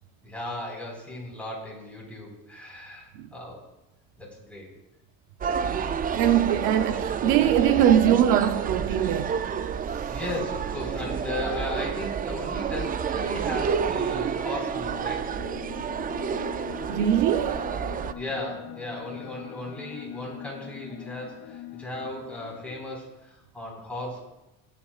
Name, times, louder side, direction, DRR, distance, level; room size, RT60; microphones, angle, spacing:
voice 1, 0.2-3.6 4.2-4.7 5.8-6.1 10.1-15.3 18.2-24.2, left 1 dB, 5° left, 4.6 m, -36 dB
sound 1, 5.4-18.1, right 7 dB, 25° right, 0.4 m, -29 dB
voice 2, 5.6-9.4 16.9-17.7, right 10 dB, 90° right, 0.8 m, -22 dB
sound 2, 13.7-22.8, left 10 dB, 75° left, 1.9 m, -43 dB
22.5 x 9.1 x 2.5 m
cardioid pair, 125°, 36 cm